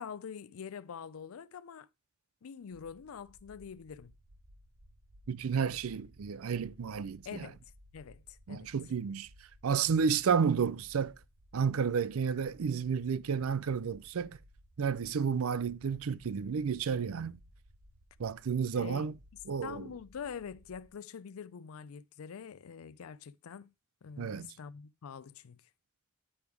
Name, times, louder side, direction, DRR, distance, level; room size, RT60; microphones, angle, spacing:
voice 1, 0.0-1.9 2.4-4.1 7.3-7.6 7.9-8.7 18.8-19.1 19.6-23.7 24.0-25.6, left 7 dB, 85° left, 0.4 m, -45 dB
sound 1, 2.6-20.9, equal, 60° right, 1.9 m, -60 dB
voice 2, 5.3-7.5 8.5-9.3 9.6-11.1 11.5-14.4 14.8-17.4 18.2-19.1 19.5-19.9 24.2-24.5, right 6 dB, 85° right, 0.5 m, -31 dB
10.0 x 3.5 x 4.6 m
head